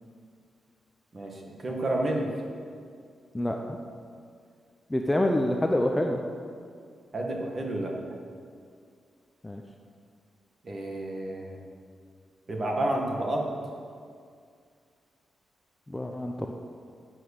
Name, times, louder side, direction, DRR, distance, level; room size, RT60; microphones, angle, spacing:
voice 1, 1.1-2.3 7.1-8.0 10.6-11.6 12.5-13.5, right 1 dB, 30° right, 0 dB, 1.7 m, -30 dB
voice 2, 3.3-3.8 4.9-6.2 9.4-9.6 15.9-16.5, left 1 dB, 10° left, 2 dB, 0.6 m, -27 dB
12.5 x 7.9 x 6.6 m, 2.2 s
wide cardioid pair, 170°, 0 cm